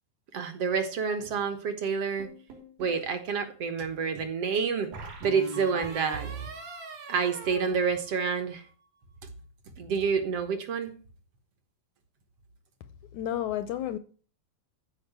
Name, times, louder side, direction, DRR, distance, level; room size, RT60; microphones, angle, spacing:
voice 1, 0.3-2.3 2.8-4.9 5.2-6.3 7.1-8.6 9.8-10.9, right 5 dB, 55° right, 1.8 m, -28 dB
sound 1, 2.2-3.0 4.9-8.6, right 3 dB, 85° right, 5.4 m, -41 dB
voice 2, 13.1-14.0, left 11 dB, 75° left, 1.8 m, -31 dB
14.0 x 5.2 x 8.1 m
omnidirectional pair, 4.1 m